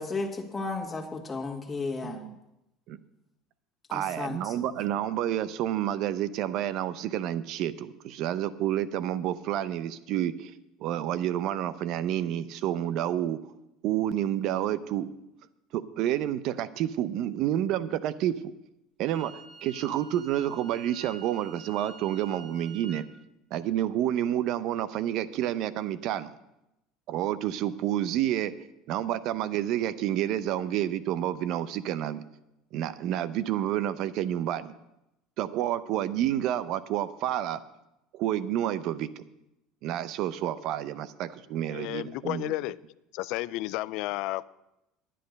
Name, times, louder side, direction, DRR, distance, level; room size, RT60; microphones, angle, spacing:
voice 1, 0.0-2.2 3.9-4.7, left 3 dB, 20° left, 1.8 m, -34 dB
voice 2, 2.0-2.4 2.9-3.0 3.9-10.5 10.8-13.4 13.8-15.1 15.7-18.4 19.0-19.3 19.6-23.1 23.5-26.3 27.1-28.5 28.9-32.2 32.7-34.7 35.4-37.6 38.1-39.2 39.8-42.5, right 11 dB, 60° right, 0.6 m, -29 dB
Wind instrument woodwind instrument, 19.0-23.0, right 3 dB, 40° right, 1.8 m, -48 dB
voice 3, 41.7-42.8 43.1-44.4, left 17 dB, 65° left, 0.3 m, -32 dB
10.5 x 10.0 x 5.2 m
supercardioid pair, 125°, 0 cm